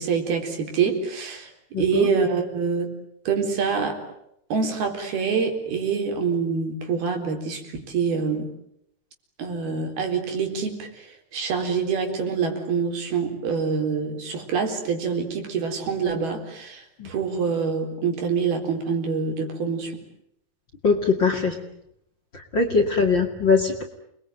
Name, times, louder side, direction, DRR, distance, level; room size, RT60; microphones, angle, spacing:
voice 1, 0.0-1.5 1.8-2.9 3.3-4.0 4.5-8.5 9.4-20.0, right 5 dB, 70° right, 4 dB, 5.8 m, -26 dB
voice 2, 1.7-2.1 17.0-17.1 20.8-21.6 22.3-23.8, left 4 dB, 35° left, 5 dB, 2.5 m, -21 dB
29.5 x 21.5 x 9.3 m, 0.76 s
omnidirectional pair, 4.6 m